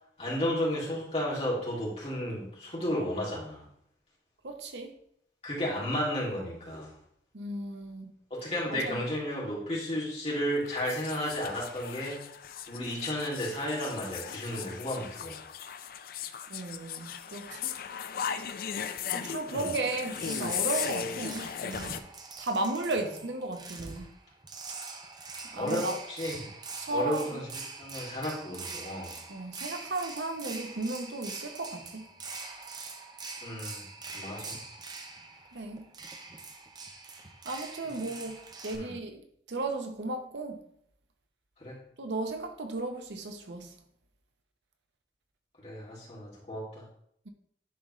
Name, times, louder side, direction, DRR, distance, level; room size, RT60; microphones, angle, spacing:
voice 1, 0.2-3.6 5.4-6.9 8.3-12.2 12.7-15.4 19.5-19.7 25.5-26.5 26.9-29.2 33.4-33.8 34.1-34.6 38.0-38.1 38.7-39.0 41.6-41.8 45.6-46.8, equal, 35° left, 2.4 m, -33 dB
voice 2, 4.4-4.9 7.3-8.1 8.7-9.0 16.5-17.6 19.1-22.0 22.4-24.1 25.5-25.9 26.8-27.2 29.3-32.0 35.5-35.8 37.4-39.2 39.5-40.6 42.0-43.7, right 2 dB, 80° right, 0.8 m, -35 dB
sound 1, 10.3-22.0, left 8 dB, 55° left, 0.4 m, -37 dB
sound 2, 20.1-38.8, right 4 dB, 25° right, 0.6 m, -44 dB
10.0 x 3.8 x 3.1 m
head